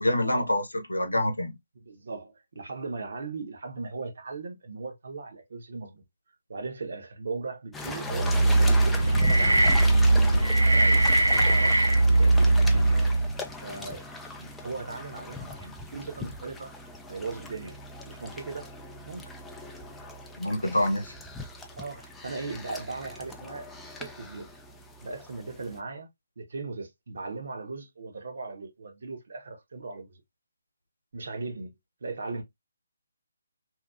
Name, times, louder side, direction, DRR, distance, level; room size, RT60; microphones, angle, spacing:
voice 1, 0.0-1.6 20.4-21.1, left 1 dB, 90° left, 0.7 m, -26 dB
voice 2, 1.8-6.0 6.5-9.7 10.7-12.5 12.9-13.1 13.6-14.1 14.4-16.7 17.1-17.8 18.1-18.7 19.1-19.3 21.8-23.7 24.0-24.5 25.0-26.1 26.4-30.1 31.1-31.7 32.0-32.4, right 3 dB, 60° right, 1.0 m, -38 dB
sound 1, 7.7-25.8, left 3 dB, 5° left, 0.4 m, -40 dB
sound 2, 8.1-13.4, right 2 dB, 90° right, 0.3 m, -20 dB
2.8 x 2.5 x 2.4 m
figure-of-eight pair, 145°, 0 cm